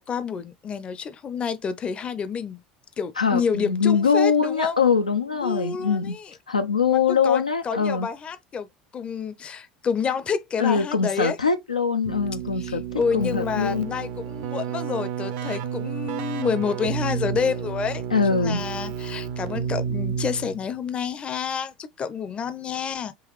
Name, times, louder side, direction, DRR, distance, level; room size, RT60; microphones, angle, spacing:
voice 1, 0.0-2.6 3.0-4.8 5.4-6.3 6.8-8.7 8.9-11.4 12.6-23.1, left 6 dB, 30° left, 0.6 m, -29 dB
voice 2, 3.2-6.2 6.5-8.1 10.6-12.8 13.1-13.9 18.1-18.6, left 5 dB, 90° left, 0.5 m, -22 dB
Keyboard (musical), 12.0-20.7, right 7 dB, 60° right, 0.6 m, -31 dB
3.8 x 2.9 x 3.1 m
figure-of-eight pair, 70°, 4 cm